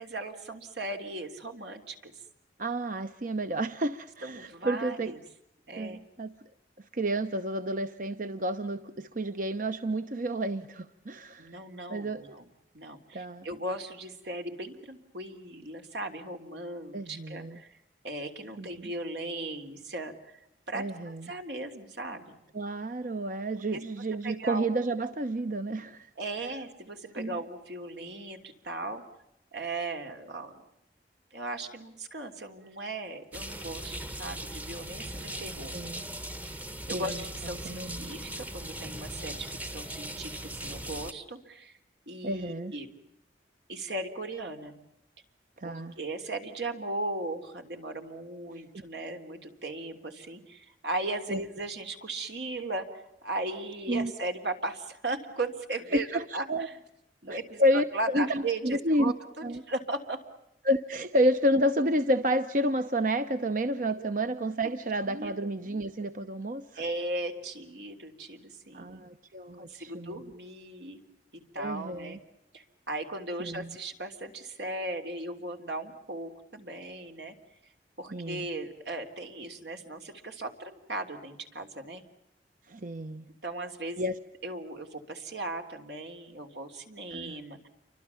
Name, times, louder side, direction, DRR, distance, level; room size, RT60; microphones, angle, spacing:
voice 1, 0.0-2.1 4.2-5.2 5.7-6.0 11.4-12.5 12.7-17.8 18.0-20.4 20.7-22.4 23.7-23.8 24.2-24.7 26.2-29.0 29.5-30.6 31.3-35.7 36.4-36.5 36.9-41.8 42.1-43.0 43.7-44.8 45.6-56.8 57.2-60.2 64.0-64.1 65.0-65.3 66.7-69.1 69.6-71.0 71.3-72.2 72.5-77.3 78.0-82.0 83.4-84.0 84.4-87.7, right 2 dB, 75° right, 5 dB, 3.4 m, -37 dB
voice 2, 2.6-5.2 5.8-6.3 6.9-11.5 11.9-12.4 13.1-13.5 16.9-17.6 18.6-18.9 20.7-21.3 22.5-26.1 27.2-27.4 35.7-36.0 36.9-37.1 37.6-38.1 42.2-42.7 45.6-45.9 51.3-51.4 53.9-54.1 55.9-56.7 57.3-59.1 59.4-59.6 60.6-66.8 68.7-70.2 71.6-72.2 73.4-73.8 78.1-78.5 82.7-83.3 84.0-84.1 87.1-87.4, right 1 dB, 50° right, 10 dB, 0.9 m, -30 dB
sound 1, 33.3-41.1, right 1 dB, 10° right, 0.9 m, -39 dB
29.5 x 24.5 x 7.1 m, 0.84 s
head